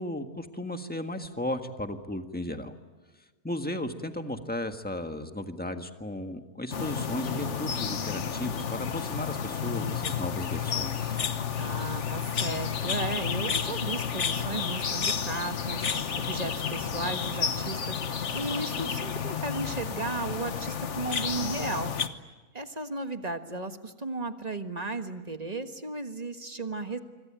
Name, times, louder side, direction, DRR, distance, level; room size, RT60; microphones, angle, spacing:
voice 1, 0.0-2.7 3.4-11.2, left 1 dB, 5° left, 6 dB, 1.6 m, -35 dB
sound 1, 6.7-22.1, left 7 dB, 55° left, 1.4 m, -31 dB
voice 2, 9.6-10.3 11.6-22.3 22.5-27.0, right 2 dB, 30° right, 7 dB, 1.5 m, -35 dB
26.5 x 25.0 x 8.9 m, 1.3 s
omnidirectional pair, 1.5 m